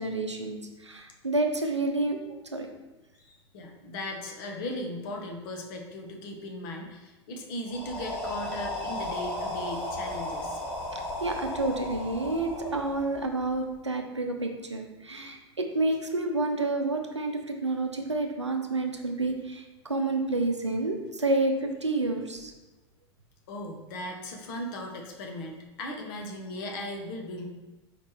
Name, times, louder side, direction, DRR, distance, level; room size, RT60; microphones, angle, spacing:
voice 1, 0.0-2.2 2.5-2.7 10.9-22.5, right 2 dB, 90° right, 4 dB, 0.5 m, -29 dB
voice 2, 3.2-10.6 23.5-27.5, left 1 dB, 50° left, 1 dB, 1.0 m, -37 dB
sound 1, 7.7-13.6, left 1 dB, 10° left, 1.5 m, -35 dB
4.9 x 3.2 x 3.3 m, 1.1 s
figure-of-eight pair, 85°, 15 cm